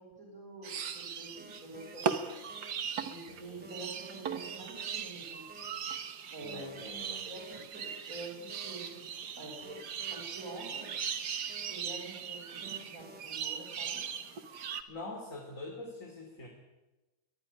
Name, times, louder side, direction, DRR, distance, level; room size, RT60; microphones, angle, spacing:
voice 1, 0.0-2.5 3.0-5.4 6.3-6.8 7.2-9.8 10.1-10.9 11.6-14.0, right 2 dB, 40° right, -5 dB, 6.0 m, -47 dB
sound 1, 0.6-14.8, right 7 dB, 55° right, 1.7 m, -39 dB
sound 2, 1.4-1.9 2.5-2.7 3.6-5.0 5.5-5.7 6.6-8.0 8.5-8.7 9.6-11.0 11.5-11.7 12.6-13.2, equal, 5° right, 2.9 m, -53 dB
voice 2, 3.2-3.7 6.4-7.3 14.9-16.5, left 2 dB, 35° left, 1 dB, 3.4 m, -44 dB
23.5 x 14.5 x 9.8 m, 1.1 s
omnidirectional pair, 2.3 m